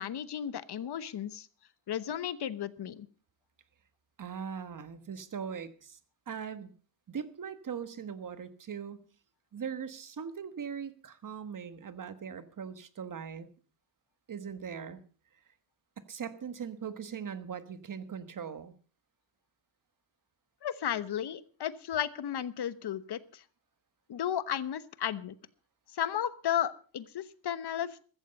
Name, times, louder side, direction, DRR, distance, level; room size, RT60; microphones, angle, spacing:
voice 1, 0.0-1.5 1.9-3.1 20.6-23.4 24.1-25.3 25.9-28.0, left 10 dB, 60° left, 15 dB, 1.1 m, -34 dB
voice 2, 4.2-6.0 6.3-6.7 7.1-9.1 9.5-13.5 14.3-15.0 16.0-18.8, right 7 dB, 45° right, 12 dB, 1.4 m, -40 dB
14.5 x 14.0 x 5.3 m, 0.39 s
wide cardioid pair, 145°, 44 cm